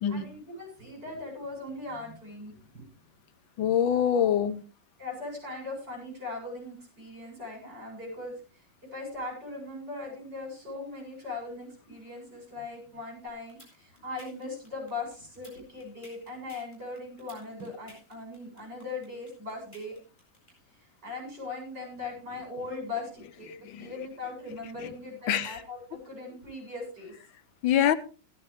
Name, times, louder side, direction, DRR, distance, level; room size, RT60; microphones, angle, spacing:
voice 1, 0.1-2.9 5.0-8.4 8.9-20.0 21.0-23.5 23.8-27.1, left 3 dB, 65° right, 8.6 m, -39 dB
voice 2, 3.6-4.6 23.7-23.9 25.3-25.6 27.6-27.9, left 9 dB, 90° left, 1.7 m, -24 dB
sound 1, 13.5-20.5, right 1 dB, 25° left, 8.0 m, -52 dB
16.0 x 13.5 x 3.3 m
omnidirectional pair, 2.0 m